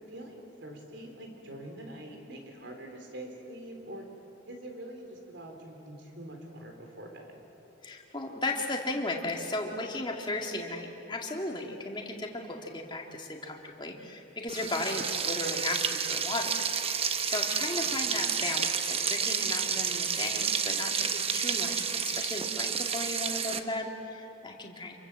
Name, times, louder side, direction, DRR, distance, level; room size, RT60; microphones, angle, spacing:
voice 1, 0.1-4.1 4.5-7.4 17.7-18.0, right 1 dB, 65° right, 3 dB, 4.3 m, -44 dB
voice 2, 7.8-24.9, left 2 dB, 25° left, 1 dB, 2.3 m, -35 dB
Frying (food), 14.5-23.6, right 7 dB, 30° right, 1.0 m, -30 dB
27.5 x 23.5 x 7.6 m, 3.0 s
head